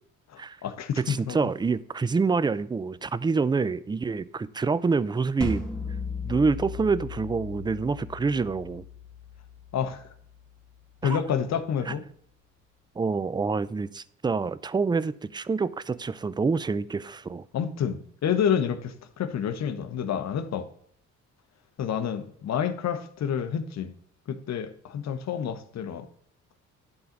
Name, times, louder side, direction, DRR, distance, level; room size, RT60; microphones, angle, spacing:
voice 1, 0.3-1.4 9.7-10.0 11.0-12.0 17.5-20.7 21.8-23.9 24.3-26.1, left 8 dB, 60° left, 1.1 m, -29 dB
voice 2, 1.0-5.6 6.2-8.8 11.0-11.2 11.9-12.0 13.0-17.4, right 4 dB, 15° right, 0.4 m, -27 dB
sound 1, 5.4-10.5, left 4 dB, 5° left, 2.2 m, -37 dB
11.0 x 3.9 x 5.8 m
cardioid pair, 90°, 30 cm